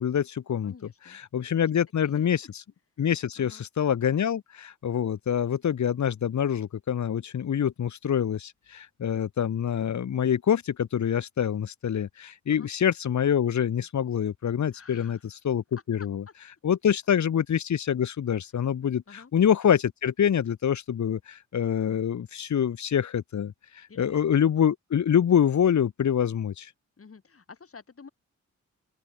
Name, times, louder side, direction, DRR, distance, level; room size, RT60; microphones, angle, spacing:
voice 1, 0.0-0.7 1.1-2.5 3.0-16.2 16.6-26.7, left 8 dB, 75° left, 1.3 m, -26 dB
voice 2, 0.6-1.2 1.4-1.7 2.0-2.3 3.4-3.6 12.5-12.7 14.7-15.3 16.0-16.3 19.1-19.3 23.9-24.4 27.0-28.1, left 5 dB, 50° left, 7.2 m, -50 dB
open air
wide cardioid pair, 90°, 29 cm